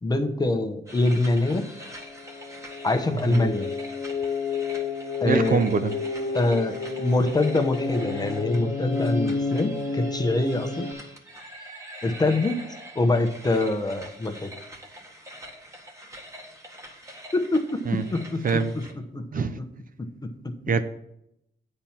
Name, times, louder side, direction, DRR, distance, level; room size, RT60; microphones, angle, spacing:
voice 1, 0.0-1.6 2.8-3.7 5.2-5.6 6.3-10.9 12.0-12.6 12.9-14.5 17.3-18.6 19.1-19.2 19.5-19.6, left 2 dB, 20° left, 6 dB, 1.0 m, -24 dB
sound 1, 0.9-18.9, right 1 dB, 15° right, 1.7 m, -44 dB
sound 2, 1.5-10.9, left 4 dB, 55° left, 1.3 m, -31 dB
voice 2, 5.2-5.9 17.9-18.0 18.4-18.7 19.3-19.6 20.7-20.8, right 5 dB, 45° right, 11 dB, 0.6 m, -24 dB
8.8 x 4.4 x 7.2 m, 0.82 s
cardioid pair, 100°, 19 cm